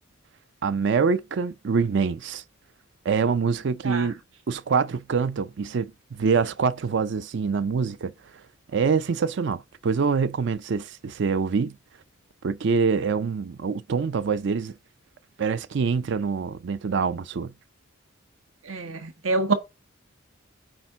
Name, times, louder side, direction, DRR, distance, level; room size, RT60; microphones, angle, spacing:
voice 1, 0.6-2.4 3.1-4.2 4.5-8.1 8.7-11.7 12.4-14.7 15.4-17.5, right 5 dB, 60° right, 0.4 m, -25 dB
voice 2, 18.6-19.5, right 3 dB, 80° right, 1.4 m, -26 dB
8.7 x 4.3 x 3.7 m
head